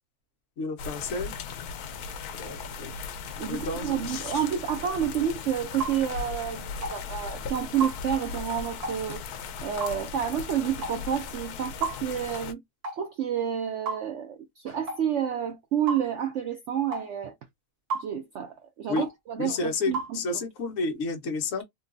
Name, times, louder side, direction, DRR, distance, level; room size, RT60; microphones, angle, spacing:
voice 1, 0.6-1.3 2.4-2.9 3.5-4.4 18.9-19.0 19.4-21.6, left 3 dB, 60° left, 1.1 m, -31 dB
sound 1, 0.8-12.5, left 6 dB, 80° left, 1.1 m, -38 dB
voice 2, 3.4-9.2 9.6-12.6 12.9-17.3 17.9-20.2, right 9 dB, 65° right, 0.8 m, -29 dB
sound 2, 5.8-6.0 6.8-7.0 7.8-8.0 8.8-9.0 9.8-10.0 10.8-11.0 11.8-12.0 12.8-13.0 13.9-14.1 14.9-15.0 15.9-16.0 16.9-17.1 17.9-18.1 19.0-19.1 19.9-20.1, right 4 dB, 80° right, 1.7 m, -32 dB
3.7 x 2.3 x 2.5 m
omnidirectional pair, 1.6 m